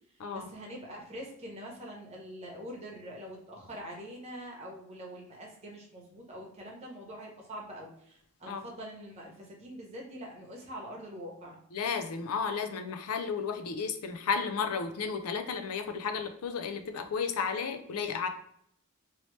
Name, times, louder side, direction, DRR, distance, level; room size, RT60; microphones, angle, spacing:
voice 1, 0.3-11.6, equal, 30° right, -1 dB, 0.9 m, -44 dB
voice 2, 11.7-18.3, left 5 dB, 80° left, 7 dB, 0.4 m, -33 dB
3.0 x 2.8 x 3.1 m, 0.69 s
head